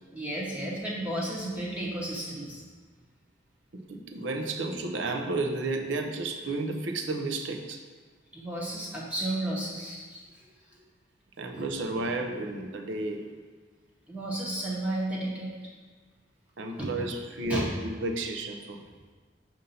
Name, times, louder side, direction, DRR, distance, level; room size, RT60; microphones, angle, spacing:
voice 1, 0.1-2.6 8.3-10.5 11.5-11.6 14.1-15.5 16.8-17.1 17.5-17.7, right 1 dB, 5° right, -5 dB, 0.8 m, -33 dB
voice 2, 3.7-7.8 11.4-13.3 16.6-18.8, right 2 dB, 75° right, 4 dB, 0.6 m, -32 dB
6.6 x 2.7 x 5.5 m, 1.5 s
head